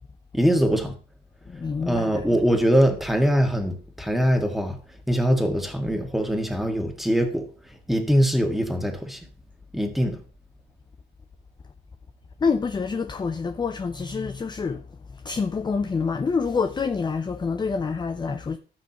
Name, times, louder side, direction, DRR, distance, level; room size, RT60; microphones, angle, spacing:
voice 1, 0.3-1.0 1.9-4.8 5.1-7.5 7.9-9.2 9.7-10.2, equal, ahead, 1.8 m, -22 dB
voice 2, 1.5-2.2 12.4-14.8 15.1-18.6, left 5 dB, 20° left, 0.5 m, -27 dB
14.0 x 6.0 x 2.9 m
cardioid pair, 90°, 20 cm